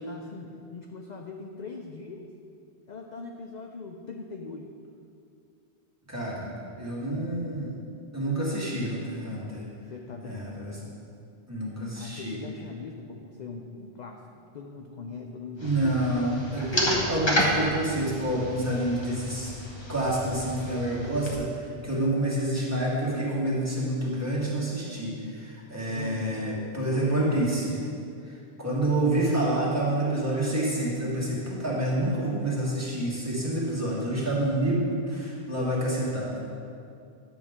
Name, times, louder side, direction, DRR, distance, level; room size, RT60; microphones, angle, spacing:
voice 1, 0.0-2.3 2.9-4.7 7.1-7.7 9.9-10.9 12.0-14.2 14.5-15.9 25.9-26.4 34.3-34.4, left 4 dB, 50° left, 2 dB, 0.6 m, -41 dB
voice 2, 6.1-7.7 8.1-9.6 10.2-10.8 11.5-12.4 15.6-19.5 19.9-27.8 28.2-36.4, right 1 dB, 15° right, -7 dB, 1.9 m, -28 dB
sound 1, 15.6-21.4, equal, 25° left, 1.2 m, -31 dB
10.0 x 7.1 x 3.6 m, 2.5 s
omnidirectional pair, 1.1 m